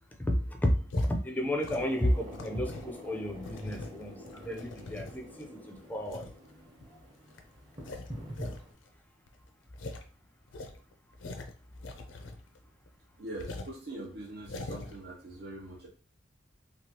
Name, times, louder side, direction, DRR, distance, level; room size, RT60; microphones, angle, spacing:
voice 1, 0.2-6.3, equal, 10° left, 3 dB, 0.4 m, -32 dB
sound 1, 0.9-1.1 1.6-2.9 3.3-5.4 6.1-6.4 6.8-6.9 7.3-7.4 7.7-8.6 8.9-9.0 9.3-9.4 9.7-10.0 10.5-12.6 12.9-13.0 13.4-13.8 14.3-15.0, left 2 dB, 85° left, 0.5 m, -42 dB
sound 2, 1.7-8.7, equal, 25° right, 0.8 m, -47 dB
voice 2, 13.2-15.9, right 1 dB, 60° right, -4 dB, 0.7 m, -43 dB
3.1 x 2.3 x 2.8 m, 0.41 s
head